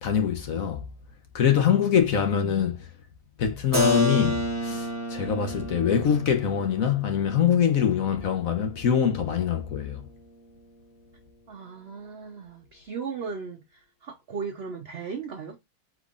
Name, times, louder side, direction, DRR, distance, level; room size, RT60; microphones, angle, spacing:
voice 1, 0.0-0.8 1.3-2.9 3.4-10.0, left 8 dB, 60° left, 1.1 m, -24 dB
Keyboard (musical), 3.7-9.3, left 1 dB, 10° right, 0.8 m, -30 dB
voice 2, 11.5-15.6, right 5 dB, 80° right, 0.5 m, -37 dB
5.1 x 3.6 x 2.4 m
omnidirectional pair, 1.9 m